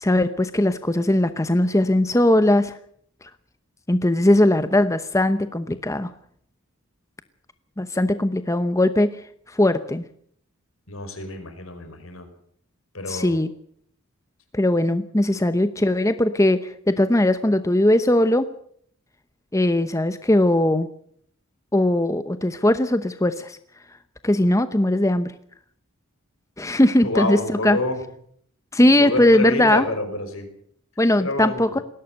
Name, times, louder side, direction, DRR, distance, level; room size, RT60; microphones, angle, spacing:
voice 1, 0.0-2.8 3.9-6.1 7.8-9.2 9.5-10.0 13.1-13.5 14.5-18.5 19.5-20.9 21.7-23.6 24.2-25.3 26.6-27.8 28.7-29.9 31.0-31.7, left 1 dB, 15° left, 11 dB, 0.8 m, -19 dB
voice 2, 10.9-12.3 12.9-13.4 27.0-28.0 29.0-30.5 31.2-31.8, left 2 dB, 75° left, 7 dB, 5.3 m, -28 dB
20.0 x 17.0 x 7.9 m, 0.65 s
head